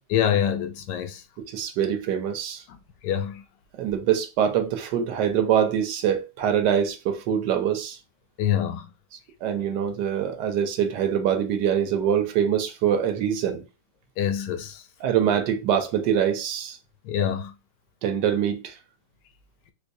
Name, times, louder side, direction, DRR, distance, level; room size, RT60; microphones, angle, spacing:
voice 1, 0.1-1.2 2.7-2.8 3.0-3.4 8.4-8.9 14.2-14.8 17.0-17.5, left 9 dB, 70° left, 1.1 m, -25 dB
voice 2, 1.4-2.6 3.7-8.0 9.4-13.7 15.0-16.8 18.0-18.8, right 9 dB, 75° right, 1.2 m, -24 dB
4.6 x 2.2 x 2.6 m
omnidirectional pair, 2.1 m